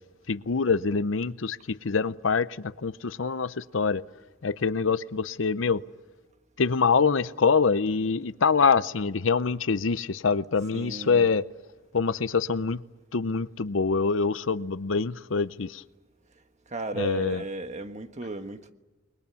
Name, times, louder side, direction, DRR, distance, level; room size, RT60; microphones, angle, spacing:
voice 1, 0.3-4.0 4.4-5.8 6.6-11.5 11.9-12.8 13.1-15.8 17.0-17.4, left 5 dB, 75° left, 0.7 m, -25 dB
voice 2, 10.7-11.3 16.7-18.7, right 2 dB, 35° right, 1.4 m, -35 dB
29.5 x 21.5 x 7.1 m
head